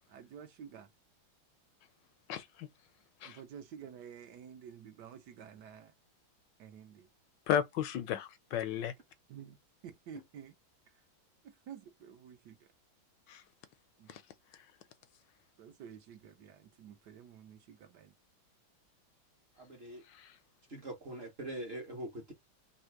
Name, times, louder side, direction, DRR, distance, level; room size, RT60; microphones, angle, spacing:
voice 1, 0.1-0.9 3.2-5.9 6.6-7.1 9.3-9.6 9.8-10.5 11.4-12.6 14.0-14.2 15.6-18.1, right 8 dB, 70° right, 1.2 m, -51 dB
voice 2, 2.3-2.7 3.2-3.4 7.5-8.9 13.3-13.4 14.1-14.2 20.1-20.3, left 9 dB, 75° left, 1.2 m, -34 dB
voice 3, 19.6-20.0 20.7-22.3, right 1 dB, 40° right, 0.9 m, -43 dB
3.5 x 2.8 x 4.4 m
omnidirectional pair, 2.1 m